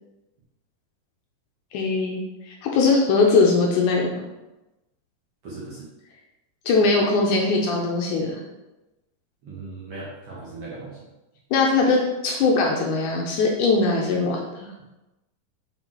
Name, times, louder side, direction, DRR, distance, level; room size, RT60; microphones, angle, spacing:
voice 1, 1.7-2.2 2.5-4.1 6.7-8.4 11.5-14.4, left 3 dB, 75° left, 0 dB, 2.0 m, -20 dB
voice 2, 5.4-5.9 9.4-11.0, right 3 dB, 60° right, -7 dB, 1.7 m, -38 dB
5.8 x 4.3 x 4.3 m, 1.0 s
omnidirectional pair, 4.0 m